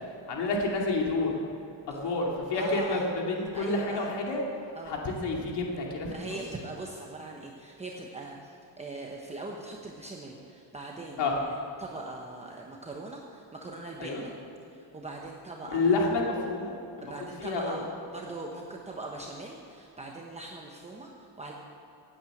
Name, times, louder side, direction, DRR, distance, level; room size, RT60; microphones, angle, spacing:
voice 1, 0.3-1.3 1.9-4.4 4.9-6.4 11.2-11.3 14.0-14.2 15.6-17.1 17.4-17.7, left 3 dB, 65° left, -1 dB, 2.6 m, -29 dB
voice 2, 2.5-3.1 3.5-4.1 4.7-5.0 6.1-14.3 14.7-16.1 17.0-21.5, right 2 dB, 15° right, -1 dB, 0.9 m, -41 dB
17.0 x 8.9 x 7.8 m, 2.7 s
cardioid pair, 175°, 45 cm